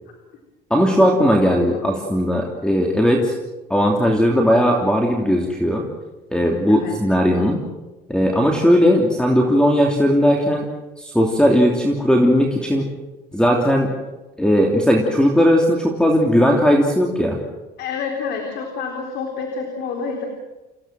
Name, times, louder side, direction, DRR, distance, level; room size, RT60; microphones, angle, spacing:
voice 1, 0.7-3.3 3.7-5.8 6.3-7.6 8.1-10.7 11.0-12.8 13.3-13.9 14.4-17.4, equal, 5° left, 1 dB, 3.1 m, -17 dB
voice 2, 1.4-1.8 6.7-6.9 17.8-20.3, left 5 dB, 80° left, 2 dB, 4.0 m, -28 dB
28.5 x 16.5 x 7.7 m, 1.1 s
cardioid pair, 110°, 17 cm